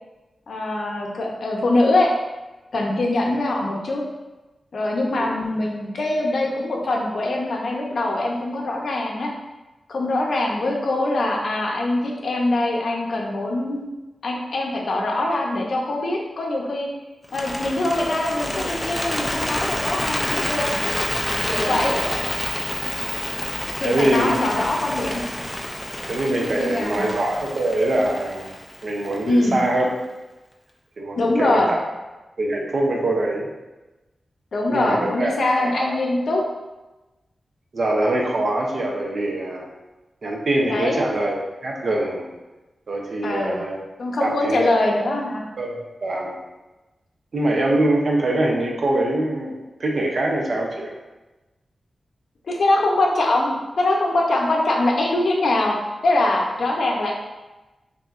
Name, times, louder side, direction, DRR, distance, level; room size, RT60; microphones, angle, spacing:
voice 1, 0.5-2.1 2.7-4.0 4.7-9.3 9.9-13.9 14.2-16.9 17.3-20.7 21.5-21.9 23.8-25.2 26.5-27.1 29.3-29.6 31.2-31.7 34.5-36.4 40.7-41.0 43.2-43.6 44.0-45.4 52.5-55.8 56.0-57.1, left 2 dB, 70° left, -1 dB, 0.7 m, -23 dB
Bird, 17.2-29.4, left 1 dB, 15° left, 0.4 m, -28 dB
voice 2, 21.6-22.2 23.8-24.4 26.1-28.5 28.8-29.9 31.0-31.8 32.4-33.5 34.7-35.9 37.7-39.7 40.2-42.3 42.9-43.8 44.2-44.7 45.6-46.4 47.3-50.9, right 1 dB, 60° right, -1 dB, 0.7 m, -23 dB
5.7 x 2.7 x 2.5 m, 1.1 s
wide cardioid pair, 115°, 0 cm